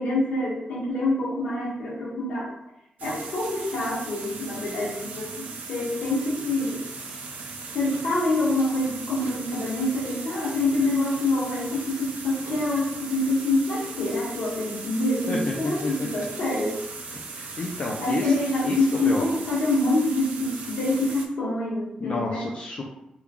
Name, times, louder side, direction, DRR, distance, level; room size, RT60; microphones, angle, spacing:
voice 1, 0.0-2.5 3.0-6.8 7.7-16.8 18.0-22.5, left 2 dB, 85° left, -7 dB, 1.3 m, -26 dB
sound 1, 3.0-21.3, right 4 dB, 85° right, 0.5 m, -38 dB
voice 2, 15.3-16.2 17.4-18.3 18.6-18.8 19.0-19.3 22.0-22.8, left 2 dB, 50° left, -2 dB, 0.4 m, -30 dB
3.0 x 2.3 x 3.5 m, 0.83 s
wide cardioid pair, 140°, 3 cm